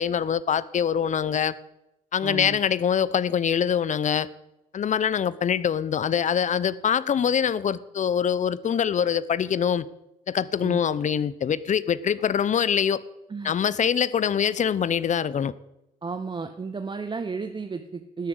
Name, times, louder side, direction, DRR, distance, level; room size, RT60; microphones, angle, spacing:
voice 1, 0.0-1.5 2.1-4.3 4.7-9.9 10.3-13.0 13.4-15.5, left 8 dB, 45° left, 0.7 m, -24 dB
voice 2, 2.2-2.6 10.6-10.8 13.3-13.5 16.0-18.3, right 4 dB, 25° right, 1.0 m, -33 dB
12.5 x 7.8 x 7.9 m
hypercardioid pair, 60°, 17 cm